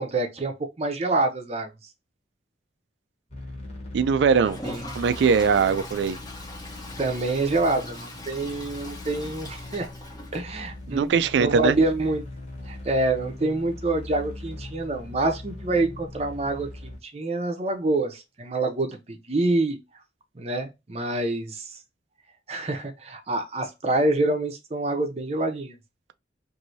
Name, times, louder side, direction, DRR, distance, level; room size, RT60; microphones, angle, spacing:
voice 1, 0.0-1.7 4.6-4.8 7.0-9.9 10.3-12.2 12.7-19.8 20.4-21.8 22.5-25.8, right 2 dB, 35° right, 0.6 m, -26 dB
sound 1, 3.3-17.0, left 2 dB, 35° left, 1.0 m, -40 dB
voice 2, 3.9-4.6 5.0-6.2 10.9-11.8, right 6 dB, 80° right, 0.3 m, -21 dB
Toilet flush, 4.3-11.0 11.3-11.4 11.6-11.7 12.0-12.1 14.6-14.7 16.0-16.1, left 1 dB, 20° left, 0.7 m, -41 dB
3.1 x 2.6 x 2.6 m
head